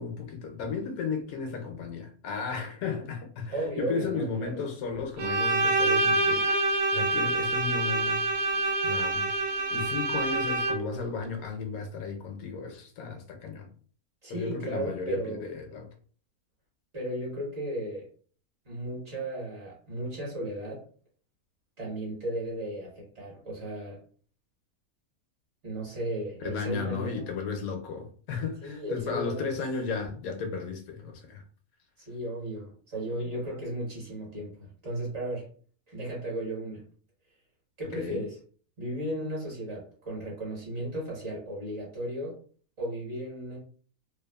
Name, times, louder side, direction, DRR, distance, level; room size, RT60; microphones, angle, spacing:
voice 1, 0.0-8.2 8.8-9.3 9.7-13.7 14.3-15.9 26.4-31.4 37.9-38.2, left 5 dB, 75° left, 1.0 m, -34 dB
voice 2, 3.5-4.6 14.2-15.4 16.9-18.1 18.6-20.9 21.8-24.0 25.6-27.2 28.6-29.6 32.1-35.5 35.9-36.8 37.8-38.4 38.8-42.4 42.8-43.6, right 1 dB, 50° right, 1.3 m, -35 dB
Bowed string instrument, 5.2-11.0, right 2 dB, 75° right, 1.0 m, -26 dB
2.8 x 2.2 x 2.2 m
omnidirectional pair, 1.6 m